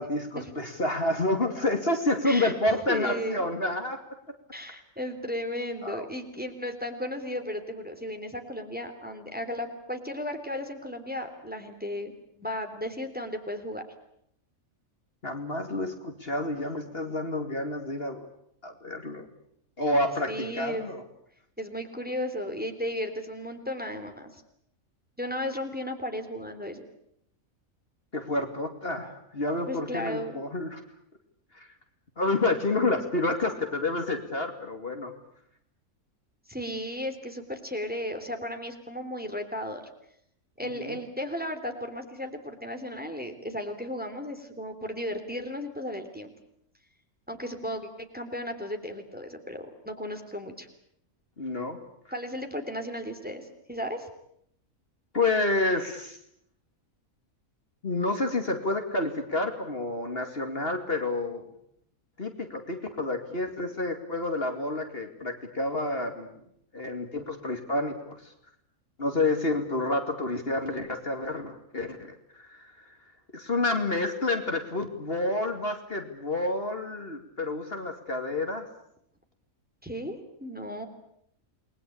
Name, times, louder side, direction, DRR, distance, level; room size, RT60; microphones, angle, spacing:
voice 1, 0.0-4.0 5.8-6.1 15.2-18.3 18.6-19.3 19.8-21.0 28.1-30.8 31.5-31.7 32.2-35.1 40.8-41.0 51.4-51.8 55.1-56.2 57.8-61.4 62.2-66.3 66.7-68.3 69.0-72.7 73.3-78.7, left 2 dB, 40° left, 5 dB, 2.7 m, -29 dB
voice 2, 2.9-3.4 4.5-13.8 20.3-20.9 21.6-24.4 25.2-26.8 29.7-30.4 36.5-39.8 40.6-46.3 47.3-50.7 52.1-54.1 79.8-80.9, left 1 dB, 5° right, 5 dB, 3.4 m, -35 dB
29.5 x 21.5 x 8.6 m, 0.73 s
omnidirectional pair, 1.5 m